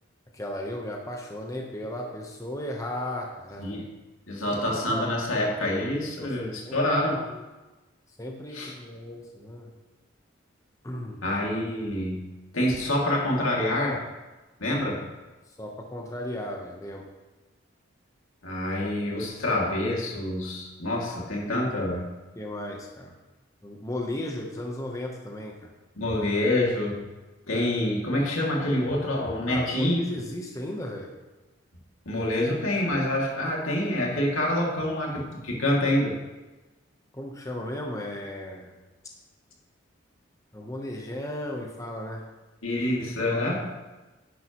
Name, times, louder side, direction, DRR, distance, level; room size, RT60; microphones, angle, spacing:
voice 1, 0.3-3.8 4.5-5.0 5.3-5.5 6.2-6.9 7.2-7.4 8.2-9.7 10.8-11.2 15.6-17.0 22.4-23.1 23.6-25.7 29.5-31.1 37.1-38.8 40.5-42.3 43.2-43.5, left 1 dB, 15° left, 0 dB, 0.9 m, -35 dB
voice 2, 4.3-7.2 8.5-8.7 11.2-12.2 12.5-14.0 14.6-15.1 18.4-22.1 26.0-27.0 27.5-30.0 32.1-36.1 42.6-43.7, left 1 dB, 85° left, -2 dB, 2.3 m, -26 dB
10.5 x 10.0 x 3.0 m, 1.2 s
head